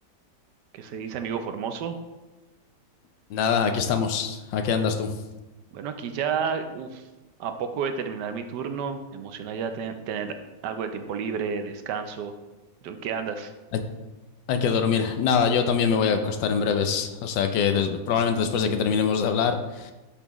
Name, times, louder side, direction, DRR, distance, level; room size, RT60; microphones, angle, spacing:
voice 1, 0.7-2.0 5.7-7.0 7.4-10.3 10.6-12.3 12.8-13.5, right 6 dB, 70° right, 8 dB, 1.1 m, -31 dB
voice 2, 3.3-5.1 14.5-19.9, left 6 dB, 75° left, 7 dB, 1.3 m, -24 dB
8.3 x 5.8 x 3.0 m, 1.1 s
omnidirectional pair, 2.1 m